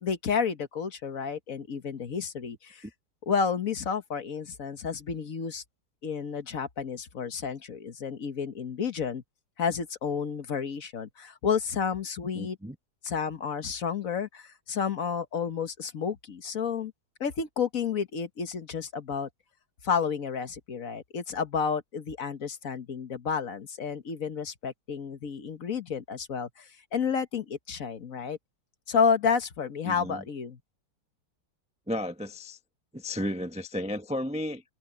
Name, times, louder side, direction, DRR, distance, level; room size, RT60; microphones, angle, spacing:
voice 1, 0.0-2.8 3.3-5.6 6.0-9.2 9.6-12.6 13.0-16.9 17.2-19.3 19.8-28.4 28.9-30.6, left 6 dB, 55° left, 1.6 m, -31 dB
voice 2, 12.3-12.8 29.8-30.2 31.9-32.6 32.9-34.6, left 1 dB, 5° right, 0.6 m, -33 dB
omnidirectional pair, 1.8 m